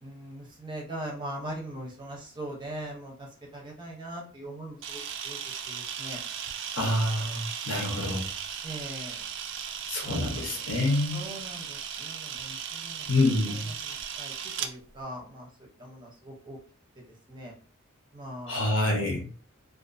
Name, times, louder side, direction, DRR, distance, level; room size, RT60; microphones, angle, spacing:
voice 1, 0.0-5.4 5.7-6.2 8.6-9.3 10.0-10.6 11.1-13.1 13.4-16.6 17.0-17.5 18.1-18.7, right 1 dB, 20° right, -1 dB, 0.6 m, -41 dB
Camera, 4.8-14.7, right 8 dB, 60° right, 0.3 m, -37 dB
voice 2, 6.8-8.2 9.9-11.2 13.1-13.7 18.5-19.3, left 2 dB, 65° left, 0 dB, 0.8 m, -27 dB
2.4 x 2.4 x 2.5 m, 0.44 s
head